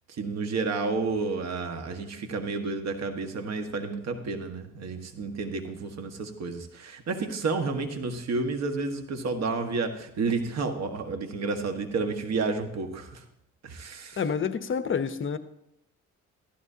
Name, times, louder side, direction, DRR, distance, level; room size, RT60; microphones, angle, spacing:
voice 1, 0.2-13.2 13.6-14.2, right 4 dB, 60° right, 6 dB, 1.6 m, -31 dB
voice 2, 14.2-15.4, left 6 dB, 40° left, 12 dB, 0.8 m, -28 dB
15.0 x 13.5 x 2.8 m, 0.79 s
cardioid pair, 90°, 30 cm